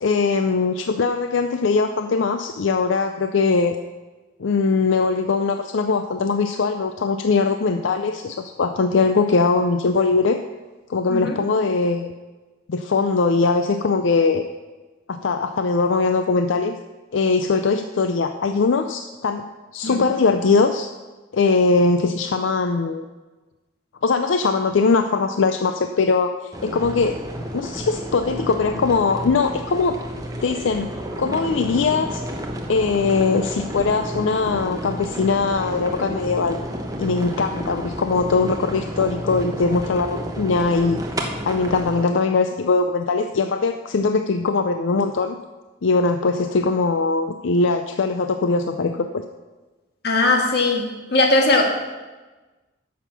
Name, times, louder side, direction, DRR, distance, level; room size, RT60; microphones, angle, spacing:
voice 1, 0.0-3.8 4.4-10.4 10.9-12.1 12.7-14.4 15.1-16.8 17.1-19.4 19.7-20.9 21.3-23.1 24.0-26.3 26.6-27.2 27.5-30.0 30.4-30.9 31.2-32.2 32.7-36.6 37.0-41.0 41.5-45.4 45.8-49.2, left 4 dB, 80° left, 8 dB, 0.5 m, -21 dB
sound 1, 26.5-42.0, equal, 20° right, 1.0 m, -31 dB
voice 2, 50.0-51.8, left 2 dB, 55° left, 2 dB, 1.5 m, -19 dB
10.0 x 7.3 x 5.9 m, 1.2 s
head